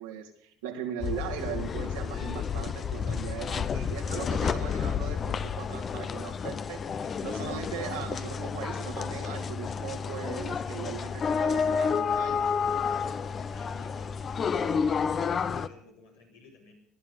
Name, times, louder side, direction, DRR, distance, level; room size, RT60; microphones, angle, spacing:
voice 1, 0.0-12.5, right 8 dB, 80° right, 1 dB, 2.1 m, -39 dB
sound 1, 1.0-15.7, left 6 dB, 40° left, 0.8 m, -30 dB
voice 2, 13.4-16.7, left 4 dB, 90° left, -3 dB, 4.9 m, -55 dB
19.0 x 12.0 x 5.3 m, 0.69 s
hypercardioid pair, 65°, 0 cm